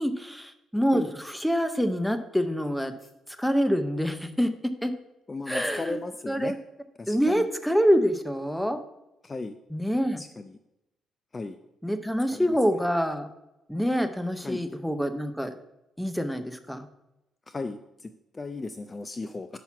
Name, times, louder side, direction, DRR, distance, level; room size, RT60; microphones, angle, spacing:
voice 1, 0.0-2.9 3.4-4.5 4.8-4.9 5.5-6.0 6.3-6.6 7.1-8.8 9.7-10.2 11.8-13.3 13.7-15.5 16.0-16.9, equal, ahead, 9 dB, 0.7 m, -26 dB
voice 2, 5.3-6.5 7.0-7.2 9.2-9.5 10.2-10.3 11.3-11.6 12.3-12.5 14.4-14.6 17.5-19.5, left 3 dB, 30° left, 9 dB, 0.4 m, -35 dB
6.0 x 5.5 x 5.8 m, 0.91 s
cardioid pair, 90°, 0 cm